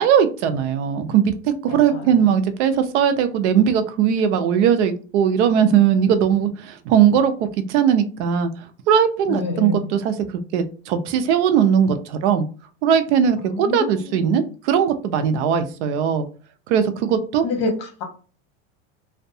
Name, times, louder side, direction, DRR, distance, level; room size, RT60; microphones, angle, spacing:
voice 1, 0.0-8.5 8.9-10.1 10.5-12.5 12.8-16.3 16.7-17.4, right 8 dB, 75° right, 9 dB, 0.5 m, -19 dB
voice 2, 1.7-2.1 9.3-9.9 13.4-14.4 17.4-18.0, left 3 dB, 60° left, 4 dB, 1.0 m, -28 dB
2.6 x 2.2 x 2.6 m, 0.37 s
supercardioid pair, 165°, 35 cm